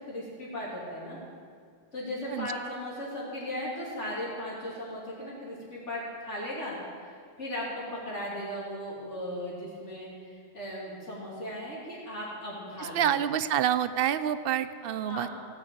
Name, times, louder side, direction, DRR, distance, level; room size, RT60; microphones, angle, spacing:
voice 1, 0.1-1.2 1.9-6.8 7.4-10.1 10.5-13.1 15.1-15.4, left 1 dB, 80° left, -7 dB, 3.5 m, -37 dB
voice 2, 12.8-15.4, right 10 dB, 60° right, 13 dB, 0.7 m, -28 dB
17.0 x 5.8 x 7.8 m, 2.1 s
omnidirectional pair, 1.2 m